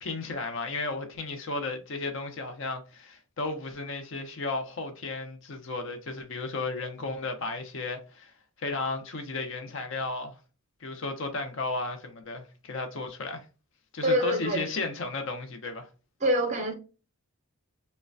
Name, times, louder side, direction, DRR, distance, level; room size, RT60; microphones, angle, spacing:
voice 1, 0.0-8.3 8.6-10.4 10.8-13.4 13.9-15.9, left 3 dB, 60° left, 0.5 m, -34 dB
voice 2, 14.0-14.7 16.2-16.7, equal, 30° right, 0.5 m, -25 dB
3.1 x 2.1 x 2.4 m
head